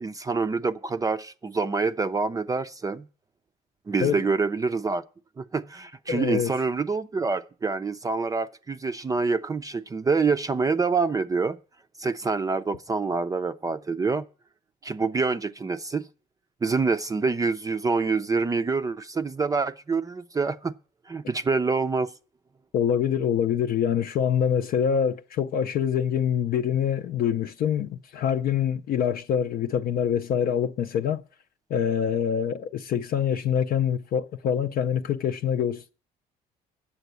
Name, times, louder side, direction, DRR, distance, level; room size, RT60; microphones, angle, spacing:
voice 1, 0.0-3.1 3.9-5.0 5.4-11.6 12.0-14.2 14.8-16.1 16.6-20.7 21.1-22.1, right 4 dB, 20° right, 0.5 m, -26 dB
voice 2, 6.1-6.5 22.7-31.2 31.7-35.9, left 8 dB, 60° left, 0.5 m, -25 dB
9.2 x 6.9 x 8.2 m
cardioid pair, 110°, 17 cm